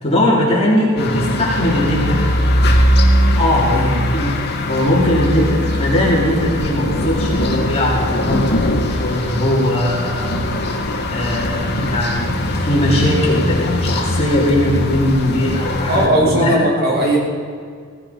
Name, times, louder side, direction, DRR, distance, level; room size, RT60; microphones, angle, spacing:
voice 1, 0.0-2.3 3.3-4.4 4.6-8.6 8.9-10.4 11.1-16.6, left 1 dB, 30° left, -5 dB, 3.1 m, -19 dB
sound 1, 1.0-16.1, left 1 dB, 50° left, 1.7 m, -20 dB
voice 2, 15.9-17.2, right 1 dB, 45° right, -3 dB, 2.9 m, -17 dB
17.0 x 15.5 x 4.2 m, 2.1 s
head